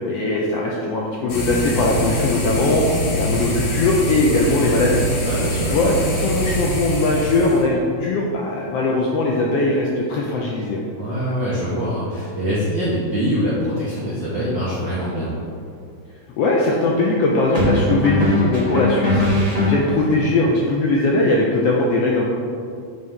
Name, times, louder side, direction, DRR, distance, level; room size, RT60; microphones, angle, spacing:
voice 1, 0.1-2.8 3.2-5.0 5.7-10.8 16.4-19.2 19.6-22.5, left 2 dB, 85° left, -2 dB, 1.4 m, -20 dB
sound 1, 1.3-7.6, equal, 65° left, 1.5 m, -24 dB
voice 2, 5.2-5.7 11.0-15.3, equal, 65° right, -8 dB, 1.1 m, -24 dB
sound 2, 14.9-15.1 17.5-20.2, left 1 dB, 30° right, 0.7 m, -21 dB
6.2 x 3.2 x 5.3 m, 2.3 s
omnidirectional pair, 3.3 m